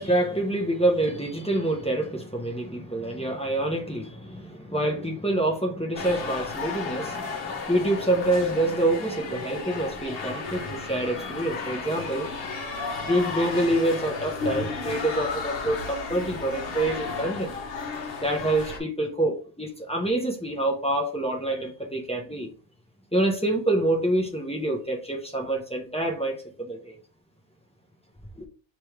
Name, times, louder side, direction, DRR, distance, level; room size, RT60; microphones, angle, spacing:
voice 1, 0.0-12.3 13.1-17.5 18.2-22.5 23.1-26.9 28.4-28.5, right 1 dB, 5° left, 0.6 m, -26 dB
sound 1, 5.9-18.8, left 4 dB, 55° left, 1.0 m, -33 dB
3.3 x 3.0 x 4.5 m
omnidirectional pair, 1.2 m